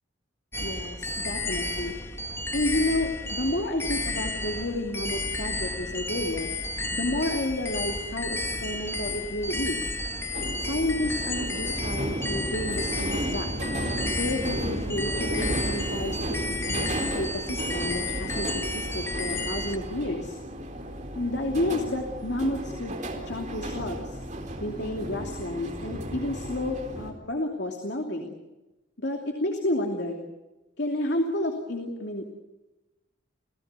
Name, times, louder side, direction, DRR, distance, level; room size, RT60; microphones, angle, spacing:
sound 1, 0.5-19.8, left 2 dB, 15° left, 1.7 m, -32 dB
voice 1, 0.6-1.9 2.5-6.5 6.9-9.9 10.6-13.5 14.1-16.4 16.7-20.4 21.1-23.0 23.3-24.2 24.6-28.4 29.0-30.2 30.8-32.4, left 1 dB, 60° left, 3 dB, 2.8 m, -31 dB
sound 2, 10.3-27.1, right 1 dB, 40° right, 3.9 m, -34 dB
29.5 x 18.0 x 8.3 m, 1.1 s
head